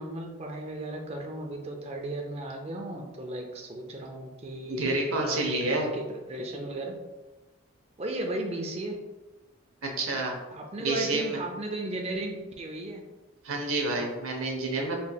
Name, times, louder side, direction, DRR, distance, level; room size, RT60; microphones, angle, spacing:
voice 1, 0.0-7.0 8.0-9.0 10.5-13.0, right 1 dB, 30° right, 2 dB, 0.4 m, -35 dB
voice 2, 4.7-5.9 9.8-10.3 10.8-11.4 13.4-15.1, right 2 dB, 85° right, 0 dB, 0.7 m, -29 dB
4.2 x 3.1 x 2.2 m, 1.1 s
head